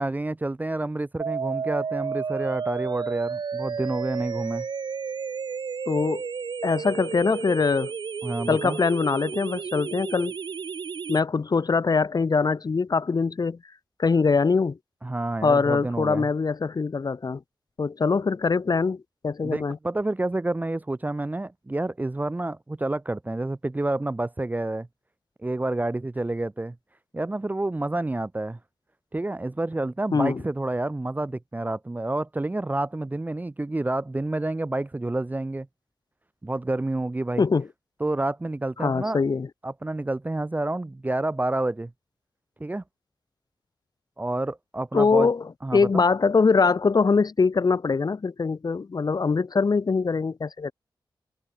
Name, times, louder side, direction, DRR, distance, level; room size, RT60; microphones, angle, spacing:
voice 1, 0.0-4.7 8.2-8.8 15.0-16.3 19.4-24.9 25.4-26.8 27.1-28.6 29.1-35.7 36.4-37.4 38.0-39.2 39.6-41.9 42.6-42.8 44.2-45.3 45.6-46.0, right 2 dB, 20° right, 0.6 m, -29 dB
sound 1, 1.2-11.2, right 6 dB, 60° right, 0.6 m, -32 dB
voice 2, 5.9-6.2 6.6-7.9 8.5-10.3 11.1-13.6 14.0-14.8 15.4-17.4 17.8-19.8 30.1-30.4 37.4-37.7 38.8-39.5 44.9-50.7, left 4 dB, 50° left, 1.2 m, -23 dB
wide cardioid pair, 80°, 9 cm